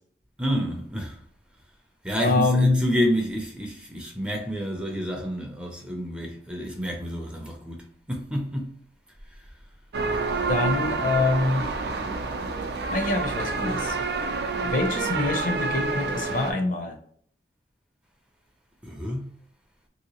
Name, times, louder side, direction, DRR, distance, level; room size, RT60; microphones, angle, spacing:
voice 1, 0.4-1.2 2.0-8.7 18.8-19.3, equal, 5° right, 0.4 m, -29 dB
voice 2, 2.2-2.8 10.5-11.7 12.9-14.0 14.6-17.0, left 2 dB, 50° left, 0.5 m, -25 dB
sound 1, 9.9-16.5, right 3 dB, 70° right, 0.4 m, -28 dB
3.2 x 2.8 x 2.8 m
head